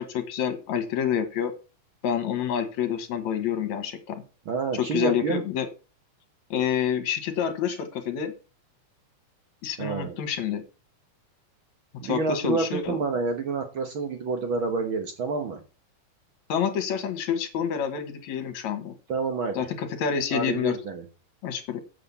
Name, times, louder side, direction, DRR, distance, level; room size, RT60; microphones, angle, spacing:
voice 1, 0.0-1.5 2.0-4.2 4.8-5.7 6.5-8.3 9.6-10.6 12.0-13.0 16.5-18.9 19.6-20.7 21.4-21.8, left 8 dB, 65° left, 9 dB, 2.7 m, -28 dB
voice 2, 4.4-5.4 9.8-10.2 12.0-15.6 19.1-19.6 20.3-21.0, right 4 dB, 55° right, 5 dB, 1.5 m, -28 dB
7.7 x 7.1 x 6.9 m, 0.34 s
omnidirectional pair, 3.6 m